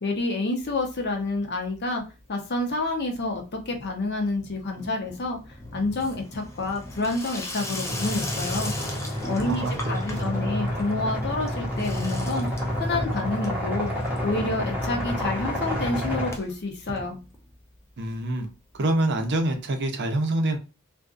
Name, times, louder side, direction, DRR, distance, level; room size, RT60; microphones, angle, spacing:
voice 1, 0.0-2.0 2.3-5.4 5.7-8.7 9.3-12.5 12.8-13.9 14.2-17.2, left 2 dB, 50° left, 0.7 m, -28 dB
Water tap faucet / Sink (filling or washing), 0.6-1.4 1.6-2.2 2.5-17.8 18.1-18.2 18.4-18.5 18.7-18.8 19.8-19.9, left 1 dB, 15° left, 0.4 m, -39 dB
sound 1, 7.8-16.3, equal, 10° right, 0.8 m, -29 dB
voice 2, 9.4-10.5 18.0-18.5 18.7-20.6, right 1 dB, 55° right, 0.6 m, -26 dB
2.5 x 2.4 x 2.4 m
head